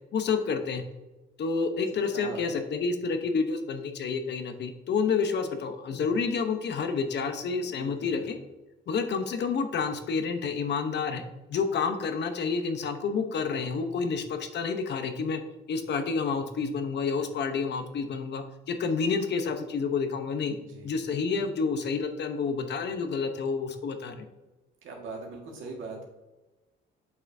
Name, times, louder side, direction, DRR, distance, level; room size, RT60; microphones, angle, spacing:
voice 1, 0.1-0.8 1.4-8.4 8.9-11.2 11.5-15.4 15.7-20.6 20.8-24.3, left 5 dB, 60° left, 7 dB, 0.9 m, -29 dB
voice 2, 2.1-2.6 7.6-8.3 20.5-21.0 24.8-26.0, right 3 dB, 85° right, 0 dB, 1.8 m, -41 dB
8.0 x 5.6 x 2.7 m, 1.1 s
cardioid pair, 90°, 20 cm